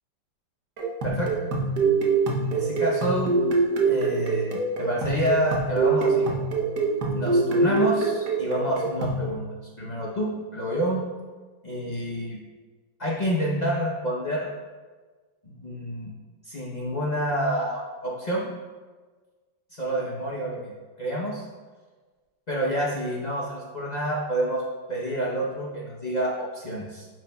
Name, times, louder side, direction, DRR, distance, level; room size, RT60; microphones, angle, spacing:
sound 1, 0.8-9.3, right 3 dB, 60° right, 1.3 m, -24 dB
voice 1, 2.3-3.3 3.9-6.3 7.1-9.5 9.8-11.0 11.6-12.4 13.0-14.5 15.5-16.1 16.5-18.5 19.7-20.7 21.0-21.5 22.5-24.6 24.9-27.1, equal, 50° left, -5 dB, 0.5 m, -28 dB
8.8 x 6.1 x 2.3 m, 1.4 s
omnidirectional pair, 2.1 m